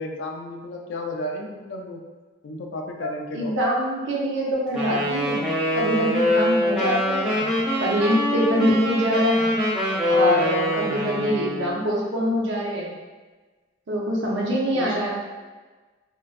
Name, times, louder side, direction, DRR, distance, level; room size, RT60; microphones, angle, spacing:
voice 1, 0.0-2.0 2.4-3.6 14.7-15.1, left 1 dB, 70° left, 2 dB, 0.3 m, -33 dB
voice 2, 3.0-5.5 5.7-9.6 10.1-12.9 13.9-15.1, equal, 75° right, -4 dB, 0.6 m, -24 dB
Wind instrument woodwind instrument, 4.7-11.7, left 1 dB, 5° right, 0.4 m, -24 dB
2.5 x 2.1 x 2.3 m, 1.3 s
head